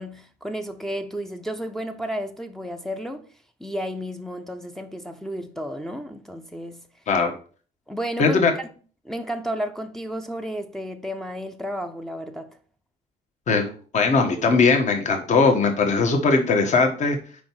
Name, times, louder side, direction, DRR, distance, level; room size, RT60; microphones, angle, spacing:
voice 1, 0.0-3.2 3.6-6.8 7.9-8.7 9.0-12.5, equal, ahead, 0.7 m, -32 dB
voice 2, 8.2-8.5 13.5-17.2, left 4 dB, 45° left, 1.5 m, -20 dB
5.1 x 4.7 x 6.1 m
cardioid pair, 110°, 17 cm